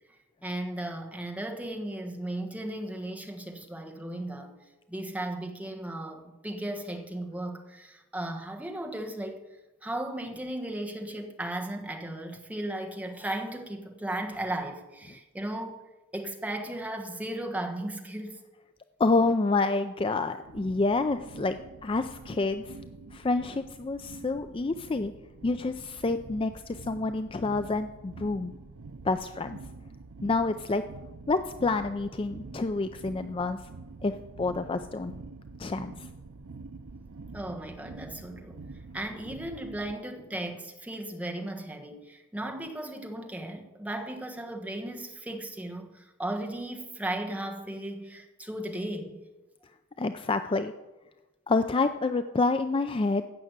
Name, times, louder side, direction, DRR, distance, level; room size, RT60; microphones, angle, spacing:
voice 1, 0.4-4.5 4.9-9.4 9.8-15.8 16.1-18.4 37.3-38.6 38.9-49.3, right 1 dB, 5° right, 1.3 m, -36 dB
voice 2, 19.0-22.7 23.1-25.1 25.4-28.5 29.0-29.6 30.2-30.8 31.3-33.6 34.0-35.1 35.6-36.1 50.0-50.7 51.5-53.2, left 3 dB, 25° left, 0.4 m, -28 dB
sound 1, 20.4-39.9, right 3 dB, 90° right, 0.6 m, -46 dB
15.5 x 6.3 x 8.0 m
head